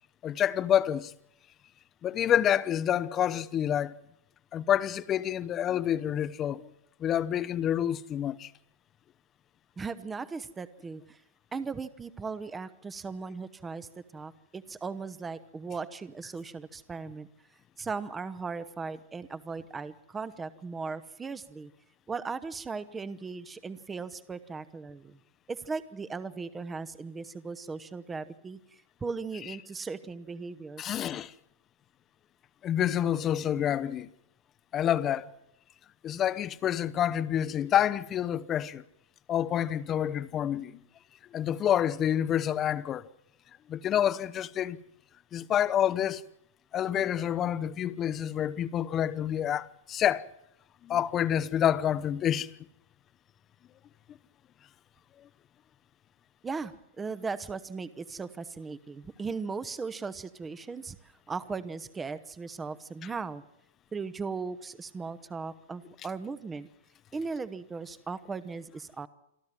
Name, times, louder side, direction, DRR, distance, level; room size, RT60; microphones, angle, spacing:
voice 1, 0.2-1.1 2.0-4.0 4.5-6.7 7.0-8.5 30.8-31.3 32.6-34.1 34.7-35.3 36.0-38.8 39.3-40.8 41.3-43.1 43.7-44.8 45.3-46.2 46.7-50.3 50.8-52.5, left 10 dB, 25° left, 0.8 m, -28 dB
voice 2, 9.8-11.2 11.5-17.3 17.8-21.7 22.1-25.2 25.5-31.0 56.4-63.4 63.9-66.7 67.1-69.1, right 4 dB, 15° right, 0.9 m, -38 dB
27.0 x 13.0 x 7.6 m
figure-of-eight pair, 100°, 0 cm